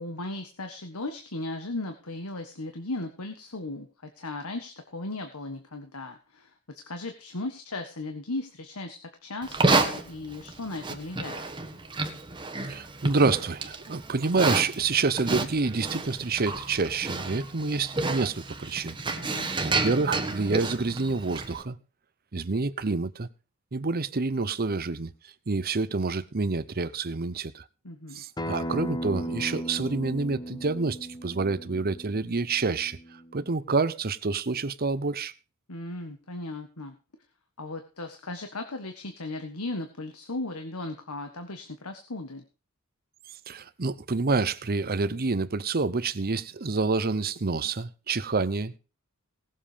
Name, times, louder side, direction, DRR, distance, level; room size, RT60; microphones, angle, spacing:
voice 1, 0.0-11.4 19.1-19.5 27.8-28.2 35.7-36.9 37.6-42.4, left 2 dB, 90° left, 1.6 m, -36 dB
Livestock farm animals working animals, 9.4-21.6, right 3 dB, 20° right, 1.3 m, -30 dB
voice 2, 12.7-19.0 19.6-21.8 22.3-23.3 23.7-25.1 25.5-27.6 28.1-33.0 33.3-35.3 43.5-48.8, right 4 dB, 45° right, 0.8 m, -28 dB
Acoustic guitar, 28.4-33.6, equal, 20° left, 0.9 m, -36 dB
18.5 x 7.6 x 5.1 m
head